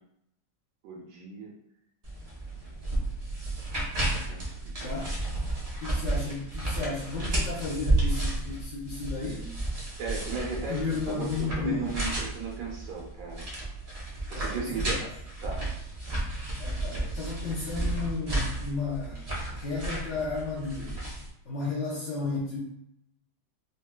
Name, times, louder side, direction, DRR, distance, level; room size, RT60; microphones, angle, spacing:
voice 1, 0.8-1.5 4.3-5.0 10.0-13.5 13.9-15.1 15.4-15.7, right 5 dB, 85° right, -2 dB, 1.3 m, -37 dB
sound 1, 2.0-21.3, right 2 dB, 70° right, 0.3 m, -32 dB
voice 2, 4.8-5.1 5.8-9.6 10.7-11.9 14.3-15.0 16.6-19.3 19.5-21.0 21.5-22.6, left 4 dB, 65° left, -6 dB, 0.7 m, -33 dB
4.0 x 2.2 x 2.2 m, 0.76 s
omnidirectional pair, 1.9 m